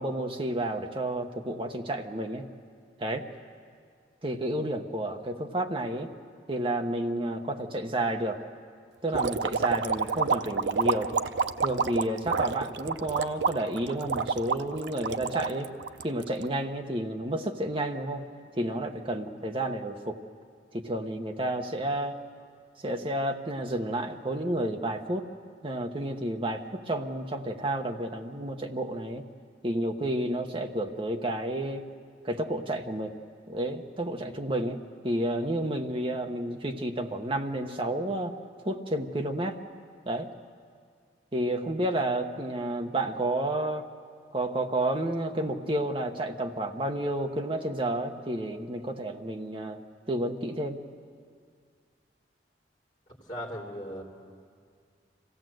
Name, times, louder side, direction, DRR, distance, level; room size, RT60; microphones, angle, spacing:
voice 1, 0.0-2.4 3.0-3.3 4.2-6.1 6.5-8.4 9.0-11.1 11.6-15.7 16.0-18.2 18.5-20.2 20.7-22.2 22.8-25.3 25.6-29.2 29.6-31.8 32.2-33.2 33.5-34.8 35.0-38.4 38.6-39.6 40.1-40.3 41.3-43.9 44.3-49.8 50.1-50.8, right 1 dB, 30° right, 4 dB, 1.0 m, -31 dB
sound 1, 9.1-16.5, right 5 dB, 80° right, 0.6 m, -28 dB
voice 2, 53.3-54.0, equal, 25° left, -2 dB, 3.1 m, -37 dB
25.5 x 16.5 x 7.8 m, 2.1 s
head